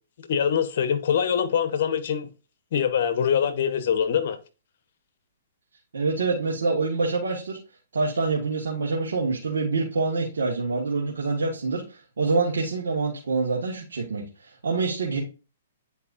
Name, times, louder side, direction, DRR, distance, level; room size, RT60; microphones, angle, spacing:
voice 1, 0.2-2.3 2.7-4.4, left 8 dB, 60° left, 1.1 m, -24 dB
voice 2, 5.9-7.6 7.9-15.2, right 3 dB, 80° right, 1.8 m, -26 dB
9.7 x 4.6 x 2.6 m
hypercardioid pair, 135°, 0 cm